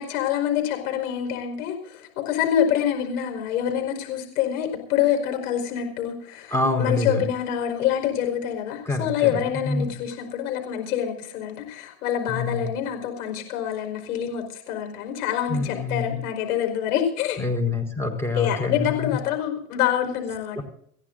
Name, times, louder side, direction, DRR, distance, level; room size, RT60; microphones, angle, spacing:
voice 1, 0.0-17.4 18.3-20.6, left 10 dB, 80° left, 4 dB, 5.1 m, -26 dB
voice 2, 6.5-7.3 8.9-9.9 12.3-12.7 15.5-16.2 17.4-19.2 20.6-20.7, left 3 dB, 5° left, 4 dB, 4.7 m, -26 dB
27.5 x 15.5 x 2.6 m, 0.67 s
hypercardioid pair, 90°, 44 cm